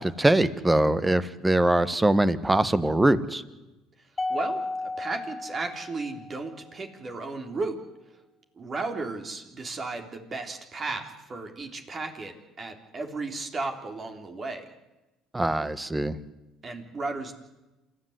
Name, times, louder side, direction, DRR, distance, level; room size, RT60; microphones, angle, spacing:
voice 1, 0.0-3.4 15.3-16.2, right 1 dB, 15° right, 14 dB, 1.5 m, -22 dB
Mallet percussion, 4.2-6.6, left 2 dB, 25° left, 1.2 m, -33 dB
voice 2, 4.3-7.8 8.6-14.7 16.6-17.3, right 3 dB, 40° right, 5 dB, 3.8 m, -34 dB
27.5 x 13.5 x 9.8 m, 1.1 s
hypercardioid pair, 70°, 0 cm